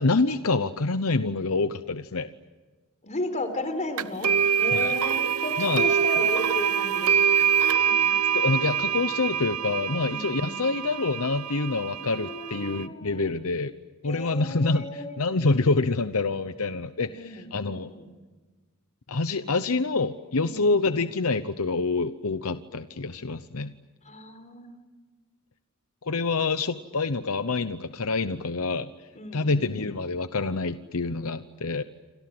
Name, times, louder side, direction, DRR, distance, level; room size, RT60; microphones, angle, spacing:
voice 1, 0.0-2.3 4.7-4.9 5.6-5.9 8.3-13.7 14.0-17.9 19.1-23.7 26.0-28.9 29.3-31.8, left 3 dB, 70° left, 11 dB, 0.9 m, -26 dB
voice 2, 3.0-4.3 4.6-7.5 7.9-8.1 10.0-10.6 11.9-13.3 14.0-15.2 17.0-18.1 19.3-19.5 20.4-20.6 24.1-24.8 29.2-29.6, left 1 dB, 35° left, 8 dB, 4.1 m, -35 dB
sound 1, 4.0-12.8, right 8 dB, 75° right, 0.8 m, -25 dB
28.5 x 26.5 x 7.9 m, 1.3 s
head